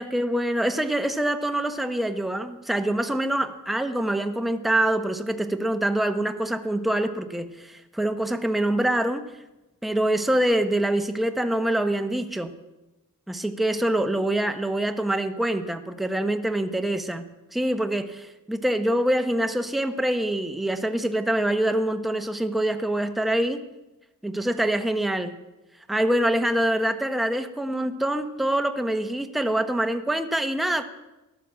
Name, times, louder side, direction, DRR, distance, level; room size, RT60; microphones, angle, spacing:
voice 1, 0.0-9.3 9.8-12.5 13.3-17.2 17.5-23.6 24.2-25.3 25.9-30.8, right 1 dB, ahead, 7 dB, 1.0 m, -25 dB
14.0 x 12.0 x 7.5 m, 1.0 s
wide cardioid pair, 85°, 34 cm